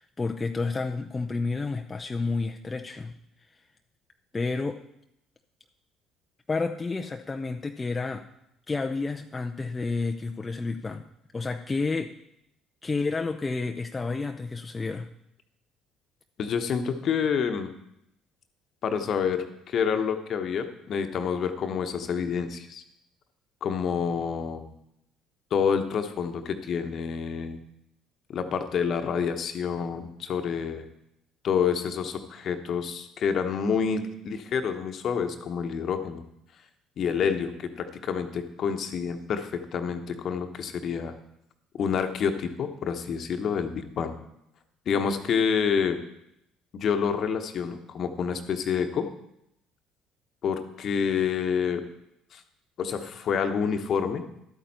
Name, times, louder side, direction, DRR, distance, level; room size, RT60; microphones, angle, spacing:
voice 1, 0.0-3.2 4.3-4.8 6.5-8.3 8.7-11.1 11.3-12.1 12.8-15.1, left 3 dB, 25° left, 4 dB, 0.6 m, -30 dB
voice 2, 16.4-17.7 18.8-22.8 23.6-24.7 25.5-27.6 28.3-30.9 31.4-36.2 37.0-41.1 41.8-44.1 44.9-46.0 46.7-49.1 50.4-51.8 52.3-52.4 52.8-54.2, left 6 dB, 50° left, 7 dB, 1.1 m, -28 dB
12.0 x 8.7 x 4.3 m, 0.81 s
hypercardioid pair, 55°, 0 cm